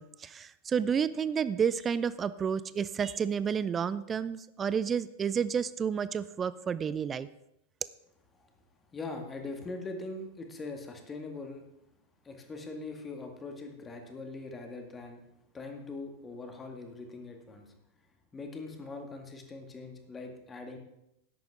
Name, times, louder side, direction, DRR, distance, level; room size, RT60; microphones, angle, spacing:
voice 1, 0.0-7.3, right 7 dB, 20° right, 16 dB, 0.4 m, -30 dB
voice 2, 8.9-11.6 12.2-15.2 15.5-17.7 18.3-20.8, left 3 dB, 15° left, 3 dB, 2.1 m, -42 dB
13.5 x 10.5 x 3.7 m, 0.83 s
figure-of-eight pair, 90°, 0 cm